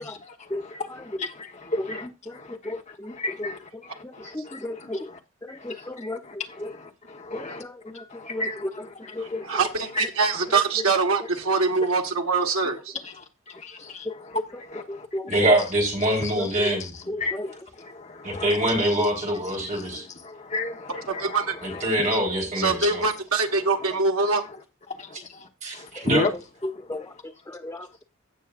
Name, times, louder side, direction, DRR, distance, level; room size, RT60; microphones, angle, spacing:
voice 1, 0.0-2.7 3.1-5.2 5.5-7.6 7.9-9.5 9.9-10.1 10.5-10.6 13.0-15.1 16.2-16.3 16.8-16.9 17.2-18.5 19.5-21.9 22.8-22.9 24.9-26.3, left 2 dB, 35° left, 1.1 m, -34 dB
voice 2, 2.3-5.1 5.4-6.7 7.3-9.6 10.0-10.1 10.5-10.8 14.0-14.1 14.9-15.4 16.4-16.8 17.1-17.5 26.0-26.1 26.6-28.0, left 1 dB, 15° left, 0.6 m, -35 dB
voice 3, 9.5-12.9 21.2-21.5 22.6-24.4, right 4 dB, 85° right, 1.4 m, -23 dB
voice 4, 15.2-16.9 18.2-20.1 21.6-23.0 25.6-26.2, right 1 dB, 35° right, 3.9 m, -24 dB
16.5 x 6.4 x 2.5 m
head